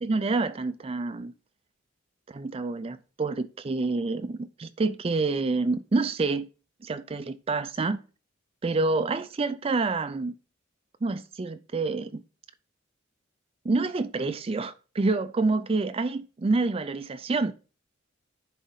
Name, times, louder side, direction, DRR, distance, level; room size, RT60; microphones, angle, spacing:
voice 1, 0.0-1.3 2.3-6.5 6.8-8.0 8.6-10.3 11.0-12.2 13.6-17.5, right 3 dB, 30° right, 0.4 m, -27 dB
10.0 x 4.1 x 5.5 m
head